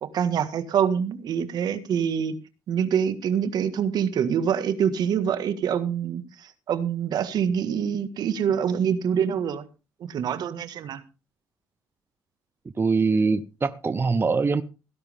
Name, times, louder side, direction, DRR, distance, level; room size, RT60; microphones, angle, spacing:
voice 1, 0.0-2.3 2.7-9.6 10.1-11.0, right 8 dB, 70° right, 1.7 m, -25 dB
voice 2, 12.8-14.6, right 4 dB, 30° right, 0.9 m, -23 dB
17.0 x 11.0 x 3.6 m
supercardioid pair, 70°, 7 cm